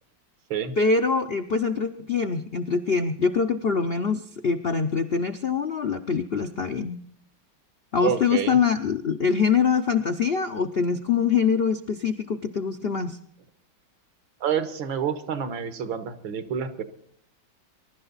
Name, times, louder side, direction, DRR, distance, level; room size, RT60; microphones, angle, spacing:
voice 1, 0.8-7.0 7.9-13.2, left 5 dB, 70° left, 7 dB, 0.5 m, -24 dB
voice 2, 8.0-8.6 14.4-16.8, right 8 dB, 80° right, 10 dB, 2.1 m, -28 dB
22.5 x 11.5 x 4.0 m, 0.65 s
omnidirectional pair, 2.1 m